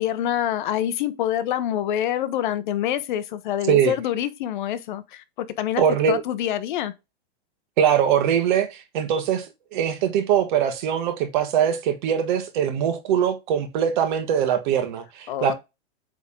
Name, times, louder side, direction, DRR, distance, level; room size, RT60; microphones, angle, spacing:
voice 1, 0.0-5.8 6.1-6.9 15.3-15.5, left 11 dB, 50° left, 0.8 m, -26 dB
voice 2, 5.8-6.2 7.8-15.5, right 9 dB, 50° right, 1.5 m, -22 dB
8.6 x 3.6 x 3.7 m
supercardioid pair, 165°, 31 cm